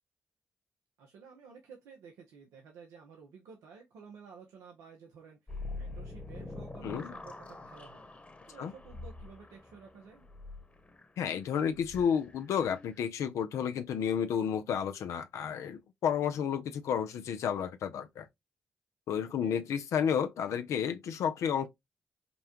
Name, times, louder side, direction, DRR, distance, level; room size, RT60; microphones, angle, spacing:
voice 1, 1.0-8.1 8.4-10.3 19.4-19.6, right 6 dB, 90° right, 0.8 m, -53 dB
sound 1, 5.5-13.0, left 3 dB, 25° left, 1.1 m, -45 dB
voice 2, 6.8-7.1 8.6-8.7 11.2-18.3 19.1-21.7, left 8 dB, 80° left, 0.5 m, -31 dB
5.2 x 2.3 x 2.9 m
supercardioid pair, 50°, 5 cm